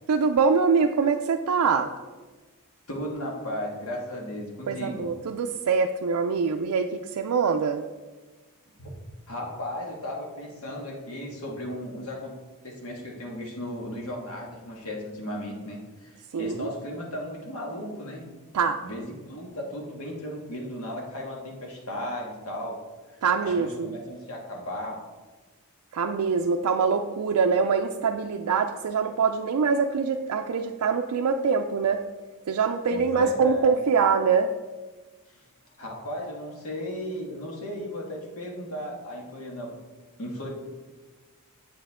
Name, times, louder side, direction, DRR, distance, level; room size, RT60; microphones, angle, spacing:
voice 1, 0.1-1.9 4.7-7.8 16.3-16.7 18.5-18.8 23.2-24.0 25.9-32.0 32.5-34.5, right 5 dB, 85° right, 4 dB, 0.4 m, -24 dB
voice 2, 2.9-5.1 8.8-8.9 9.3-12.3 12.6-18.2 18.8-22.8 23.1-25.0 32.9-33.8 35.3-35.4 35.8-39.7 40.2-40.5, left 1 dB, 70° left, -1 dB, 1.9 m, -35 dB
7.9 x 7.8 x 3.6 m, 1.3 s
head